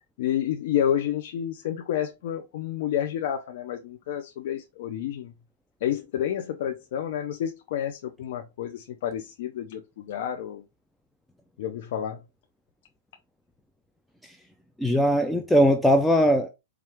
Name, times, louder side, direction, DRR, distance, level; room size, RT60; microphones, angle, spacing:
voice 1, 0.2-5.3 5.8-10.6 11.6-12.2, left 10 dB, 55° left, 0.5 m, -29 dB
voice 2, 14.8-16.5, equal, 5° left, 0.4 m, -20 dB
4.5 x 2.4 x 3.4 m
hypercardioid pair, 150°, 0 cm